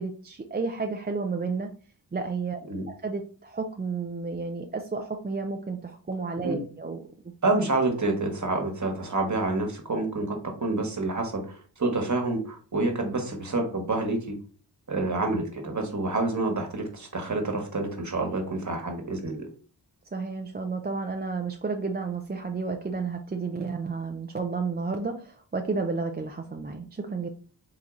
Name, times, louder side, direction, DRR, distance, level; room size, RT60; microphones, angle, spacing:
voice 1, 0.0-1.7 2.1-2.6 3.0-7.0 20.1-27.3, right 4 dB, 25° right, 4 dB, 0.5 m, -31 dB
voice 2, 7.4-14.3 14.9-19.5, right 2 dB, 40° right, 3 dB, 1.4 m, -28 dB
3.9 x 2.9 x 3.7 m, 0.41 s
cardioid pair, 50°, 42 cm